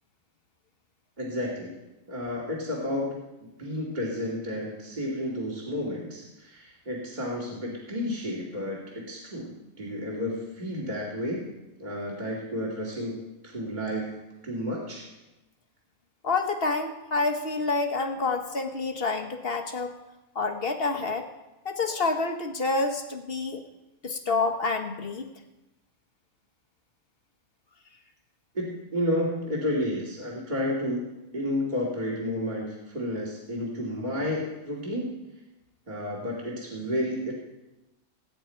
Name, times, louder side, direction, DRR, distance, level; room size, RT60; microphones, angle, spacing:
voice 1, 1.2-1.7 2.1-11.5 11.8-14.2 14.4-15.1 28.5-31.0 31.3-35.1 35.9-37.3, left 1 dB, 30° right, -4 dB, 2.7 m, -31 dB
voice 2, 16.2-19.9 20.3-21.3 21.6-23.6 24.0-25.3, left 3 dB, 45° left, 6 dB, 1.3 m, -28 dB
20.5 x 9.7 x 4.5 m, 1.0 s
omnidirectional pair, 1.4 m